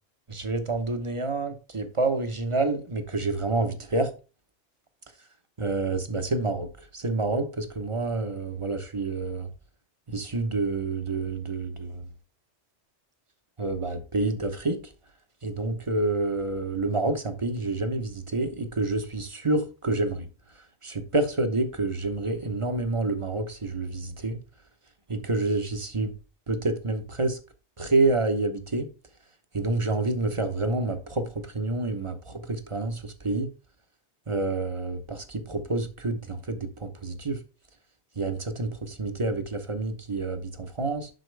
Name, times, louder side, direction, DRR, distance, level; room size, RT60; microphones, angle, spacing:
voice 1, 0.3-4.1 5.6-6.7 6.9-9.5 10.1-12.1 13.6-14.8 15.4-20.3 20.8-24.4 25.1-26.1 26.5-27.4 27.8-28.9 29.5-33.5 34.3-37.4 38.2-41.1, right 2 dB, 30° right, 0.9 m, -28 dB
7.8 x 5.8 x 3.3 m
omnidirectional pair, 1.2 m